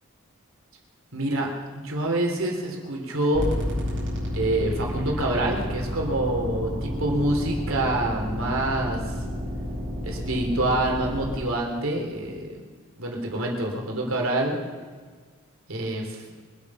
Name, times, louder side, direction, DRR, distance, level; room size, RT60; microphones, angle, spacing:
voice 1, 1.1-1.5 1.7-3.5 4.3-9.0 10.0-12.6 13.0-14.6 15.7-16.2, right 1 dB, 70° right, 0 dB, 3.3 m, -26 dB
sound 1, 3.3-11.4, equal, 55° right, 5.2 m, -30 dB
24.0 x 8.8 x 6.0 m, 1.5 s
head